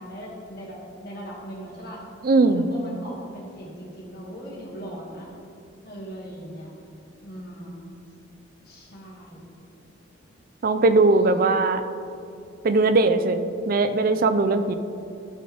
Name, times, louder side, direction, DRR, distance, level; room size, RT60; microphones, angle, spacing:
voice 1, 0.0-2.0 2.5-5.3 5.8-6.7 7.2-7.9 8.7-9.5 11.1-11.5, equal, 55° left, -4 dB, 2.0 m, -39 dB
voice 2, 2.2-2.7 10.6-11.8 12.6-14.7, right 3 dB, 50° right, 9 dB, 0.5 m, -20 dB
13.0 x 5.3 x 3.4 m, 2.6 s
head